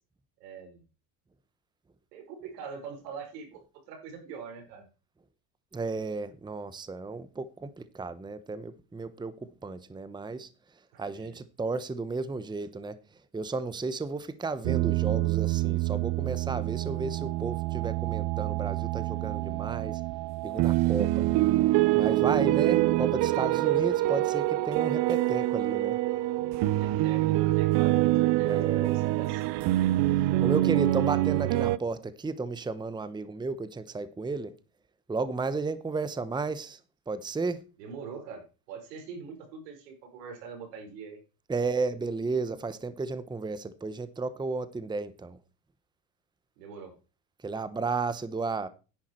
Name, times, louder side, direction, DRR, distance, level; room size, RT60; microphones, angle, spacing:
voice 1, 0.4-0.8 2.1-3.6 3.9-4.8 10.9-11.4 26.6-29.5 37.8-41.2 46.6-46.9, right 5 dB, 90° right, 4.9 m, -43 dB
voice 2, 5.7-10.5 11.0-13.0 13.3-20.0 20.4-21.4 21.9-26.0 28.4-28.9 30.4-34.5 35.1-36.8 37.1-37.6 41.5-45.4 47.4-48.7, right 3 dB, 10° right, 0.9 m, -33 dB
sound 1, 14.6-31.8, right 17 dB, 60° right, 0.8 m, -26 dB
10.5 x 9.6 x 4.4 m
supercardioid pair, 105°, 48 cm